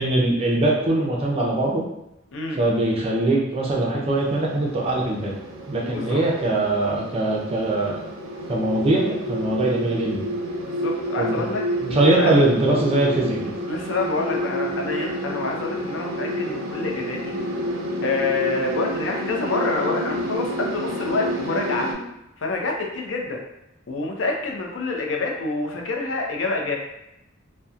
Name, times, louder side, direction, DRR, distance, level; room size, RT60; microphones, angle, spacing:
voice 1, 0.0-1.8 2.6-5.3 5.7-8.0 8.5-10.2 11.2-11.4 11.8-13.4, right 2 dB, 30° right, -3 dB, 0.5 m, -21 dB
sound 1, 4.2-21.9, equal, 85° right, 0.5 m, -29 dB
voice 2, 5.8-6.2 10.6-11.6 12.1-12.3 13.7-17.3 18.0-21.9 22.4-23.4 23.9-26.8, left 3 dB, 65° left, 0 dB, 0.5 m, -27 dB
2.7 x 2.1 x 2.3 m, 0.86 s
head